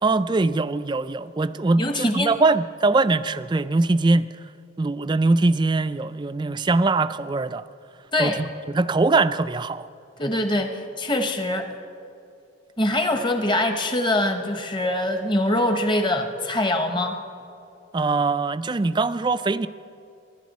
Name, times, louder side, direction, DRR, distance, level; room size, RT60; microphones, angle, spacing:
voice 1, 0.0-4.3 4.8-7.6 8.2-9.9 17.9-19.7, right 3 dB, 20° right, 14 dB, 0.3 m, -22 dB
voice 2, 1.8-2.3 8.1-8.4 10.2-11.7 12.8-17.2, left 1 dB, 25° left, 5 dB, 1.1 m, -23 dB
24.5 x 12.0 x 4.2 m, 2.6 s
head